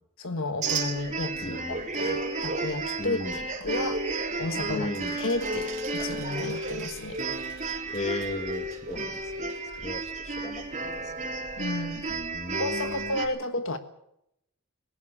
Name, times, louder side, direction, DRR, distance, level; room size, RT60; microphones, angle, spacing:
voice 1, 0.2-4.0 4.4-5.7 5.9-7.2 11.6-12.0 12.6-13.8, left 2 dB, 65° left, 9 dB, 1.5 m, -32 dB
sound 1, 0.6-13.3, right 3 dB, 35° right, 3.5 m, -32 dB
voice 2, 1.4-1.9 3.0-3.4 4.7-5.2 7.9-10.6 11.0-11.3 12.1-13.2, left 2 dB, 30° left, 8 dB, 1.9 m, -36 dB
sound 2, 4.9-10.5, right 9 dB, 60° right, 2.8 m, -49 dB
19.5 x 18.0 x 7.4 m, 0.77 s
head